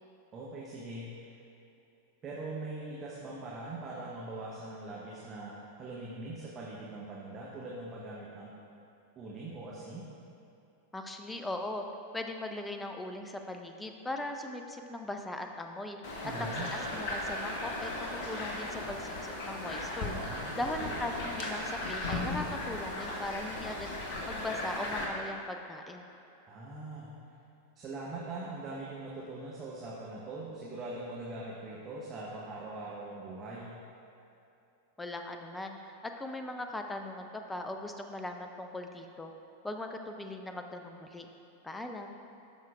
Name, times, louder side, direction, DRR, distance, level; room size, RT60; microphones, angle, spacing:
voice 1, 0.3-1.4 2.2-8.5 9.2-10.1 16.2-16.7 20.2-21.0 26.5-27.1 27.7-33.7, right 2 dB, 25° right, -5 dB, 1.0 m, -42 dB
voice 2, 10.9-11.8 12.1-16.0 16.4-20.1 20.6-23.9 24.3-26.0 35.0-39.3 39.6-41.3 41.6-42.2, left 1 dB, 10° left, 5 dB, 0.5 m, -39 dB
sound 1, 16.0-25.1, left 2 dB, 45° left, 1.1 m, -36 dB
12.5 x 5.7 x 2.4 m, 2.9 s
figure-of-eight pair, 90°, 0 cm